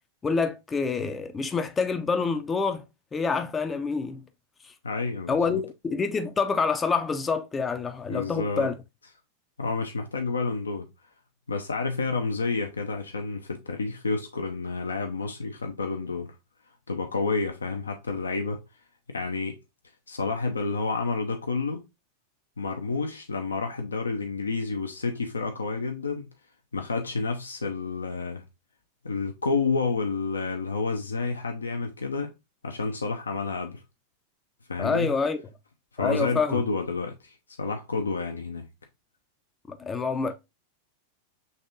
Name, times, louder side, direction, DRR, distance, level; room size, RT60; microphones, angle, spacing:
voice 1, 0.2-2.8 3.1-4.2 4.6-4.7 5.3-8.8 34.8-35.4 36.0-36.6 39.7-40.3, left 5 dB, 15° left, 0.4 m, -27 dB
voice 2, 4.8-5.6 8.1-8.7 9.6-10.9 11.5-16.4 16.9-18.6 19.1-19.6 20.1-21.8 22.6-26.3 26.7-28.4 29.0-32.3 32.6-33.8 34.7-35.1 35.9-38.7, left 4 dB, 75° left, 0.5 m, -29 dB
5.4 x 3.4 x 2.5 m
figure-of-eight pair, 90°, 0 cm